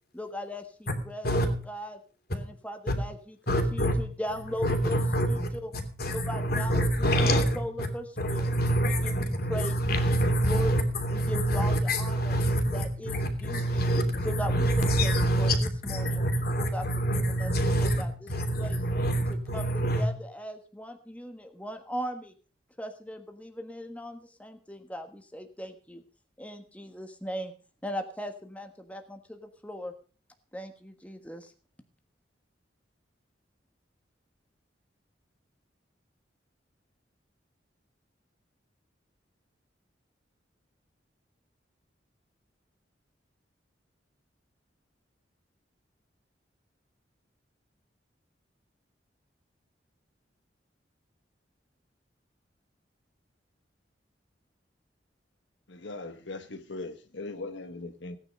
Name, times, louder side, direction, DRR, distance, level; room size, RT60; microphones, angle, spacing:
voice 1, 0.1-2.0 2.3-5.7 6.1-7.1 7.5-8.5 8.8-10.8 11.1-12.4 12.7-13.9 14.2-16.2 16.6-16.8 17.1-17.5 17.8-18.3 18.6-18.8 19.5-22.3 22.8-26.0 26.4-27.5 27.8-29.9 30.5-31.5, equal, 10° left, 5 dB, 1.4 m, -38 dB
voice 2, 3.5-3.9 4.6-7.9 8.2-15.6 15.8-18.0 18.3-20.1, right 1 dB, 55° left, 6 dB, 2.9 m, -26 dB
voice 3, 55.7-58.2, left 2 dB, 85° left, 8 dB, 1.3 m, -39 dB
17.0 x 9.8 x 5.3 m, 0.39 s
head